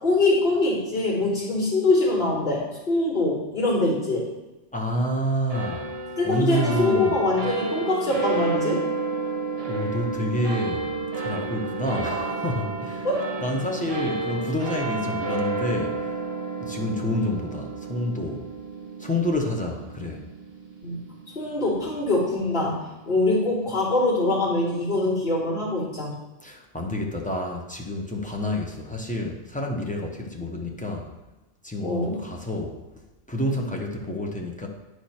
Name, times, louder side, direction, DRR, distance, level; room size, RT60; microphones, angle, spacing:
voice 1, 0.0-4.3 6.2-8.8 13.0-13.2 14.9-15.0 20.8-21.0 21.4-26.1 31.8-32.2, left 2 dB, 45° left, -10 dB, 3.3 m, -23 dB
voice 2, 4.7-6.0 6.2-7.2 9.7-10.9 11.2-13.1 13.4-16.1 16.6-18.5 19.0-20.2 26.4-31.1 31.6-32.8 33.3-34.7, left 1 dB, 5° left, 0 dB, 0.8 m, -28 dB
sound 1, 5.5-22.2, right 3 dB, 55° right, 1.3 m, -31 dB
9.8 x 4.8 x 4.4 m, 1.1 s
omnidirectional pair, 1.3 m